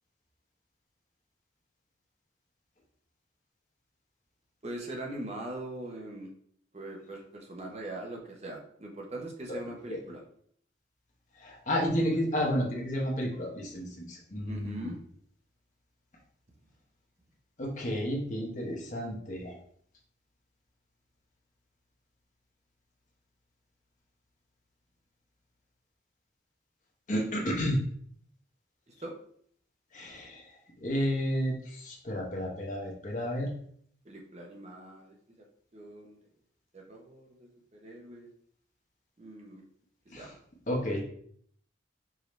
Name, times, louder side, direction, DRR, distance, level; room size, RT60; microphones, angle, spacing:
voice 1, 4.6-6.3 6.7-10.2 12.1-12.5 14.4-15.0 29.0-29.2 34.0-35.5 35.7-36.2 36.7-38.3 39.2-39.6 40.1-40.3, right 1 dB, 35° right, 1 dB, 0.7 m, -42 dB
voice 2, 11.4-14.9 17.6-19.5 27.1-27.8 29.9-30.4 30.8-33.5 40.1-40.3 40.7-41.0, equal, 40° left, -1 dB, 0.9 m, -31 dB
4.8 x 2.7 x 3.1 m, 0.63 s
head